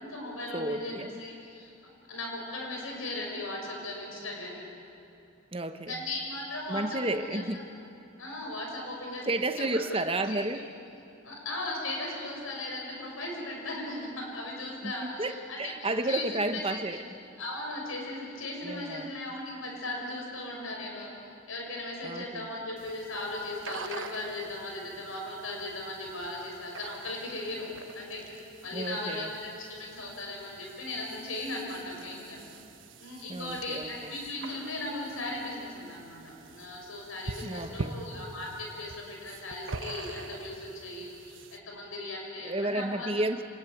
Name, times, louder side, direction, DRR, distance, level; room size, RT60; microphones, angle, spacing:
voice 1, 0.0-1.7 2.1-4.6 5.9-7.4 8.2-9.8 10.3-10.5 11.2-16.3 16.5-17.0 17.4-21.1 21.5-28.2 28.6-32.4 33.0-43.1, left 2 dB, 85° left, 0 dB, 6.3 m, -37 dB
voice 2, 0.5-1.2 5.5-6.0 6.7-7.6 9.2-10.7 14.8-17.0 18.6-19.1 22.0-22.5 28.7-29.3 33.3-34.1 37.4-37.9 42.4-43.4, right 2 dB, 25° right, 8 dB, 1.0 m, -32 dB
sound 1, 22.8-41.6, right 3 dB, 65° right, 1.1 m, -45 dB
26.5 x 19.5 x 9.2 m, 2.7 s
head